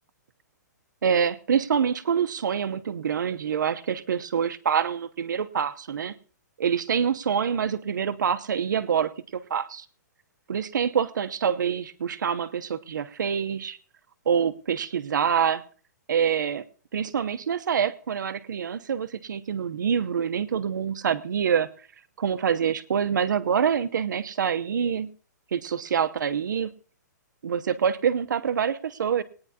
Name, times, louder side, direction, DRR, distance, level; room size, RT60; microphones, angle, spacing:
voice 1, 1.0-6.1 6.6-9.1 9.5-9.8 10.5-13.8 14.3-15.6 16.1-16.6 16.9-21.7 22.2-25.1 25.5-26.7 27.4-29.2, right 7 dB, 85° right, 0.9 m, -26 dB
20.5 x 9.7 x 2.9 m
hypercardioid pair, 180°, 10 cm